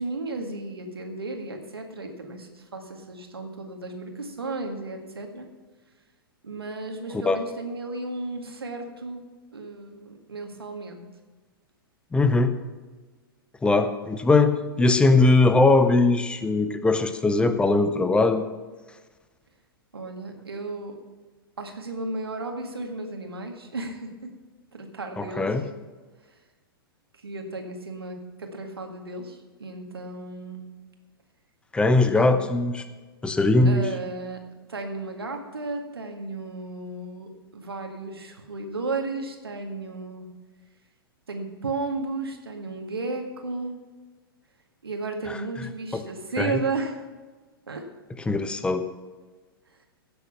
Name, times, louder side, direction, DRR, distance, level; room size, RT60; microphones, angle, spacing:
voice 1, 0.0-5.5 6.4-9.3 9.5-11.1 19.9-21.0 21.6-24.3 24.7-25.5 27.2-30.7 32.1-32.4 33.6-34.4 34.7-40.3 41.3-43.8 44.8-47.0 47.7-47.8, right 3 dB, 80° right, 4 dB, 1.9 m, -34 dB
voice 2, 12.1-12.5 13.6-18.4 25.2-25.6 31.7-32.8 33.2-33.9 45.3-46.0 46.4-46.6 48.3-48.9, left 3 dB, 10° left, 10 dB, 0.9 m, -21 dB
16.0 x 7.0 x 5.8 m, 1.3 s
figure-of-eight pair, 105°, 13 cm